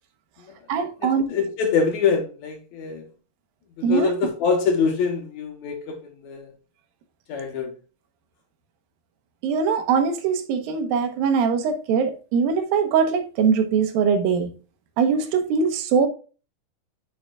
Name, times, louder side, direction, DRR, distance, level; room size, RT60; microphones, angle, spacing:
voice 1, 0.7-1.2 3.8-4.1 9.4-14.5 15.0-16.1, right 6 dB, 90° right, 2.8 m, -22 dB
voice 2, 1.3-3.0 3.8-6.0 6.2-6.5 7.3-7.7, left 5 dB, 65° left, 2.1 m, -24 dB
9.6 x 6.2 x 2.3 m
omnidirectional pair, 4.0 m